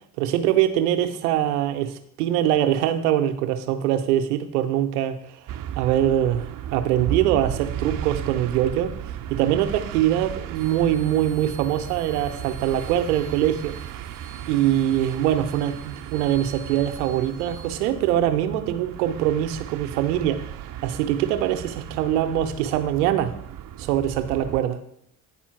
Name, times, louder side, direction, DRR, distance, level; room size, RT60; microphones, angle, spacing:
voice 1, 0.2-5.4 5.8-8.9 9.3-13.7 14.5-23.3 23.8-24.8, right 11 dB, 75° right, 8 dB, 0.9 m, -23 dB
sound 1, 5.5-24.6, right 10 dB, 45° right, 0.7 m, -35 dB
sound 2, 10.5-17.7, right 3 dB, 60° left, 3.5 m, -48 dB
9.7 x 4.4 x 5.8 m, 0.72 s
hypercardioid pair, 50°, 45 cm